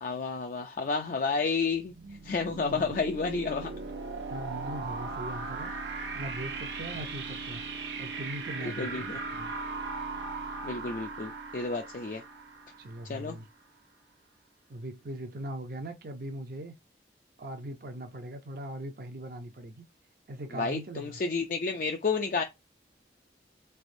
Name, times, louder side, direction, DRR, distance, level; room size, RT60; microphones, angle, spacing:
voice 1, 0.0-1.9 2.2-3.7 8.6-9.2 10.6-12.2 13.1-13.4 20.5-22.4, left 4 dB, 50° left, 0.4 m, -31 dB
sound 1, 1.7-13.4, right 3 dB, 85° right, 0.9 m, -38 dB
voice 2, 2.4-2.9 4.3-7.6 8.0-9.1 9.3-9.5 12.8-13.5 14.7-16.7 17.4-19.8 20.3-21.2, right 1 dB, 55° right, 0.5 m, -40 dB
3.5 x 3.3 x 2.6 m
head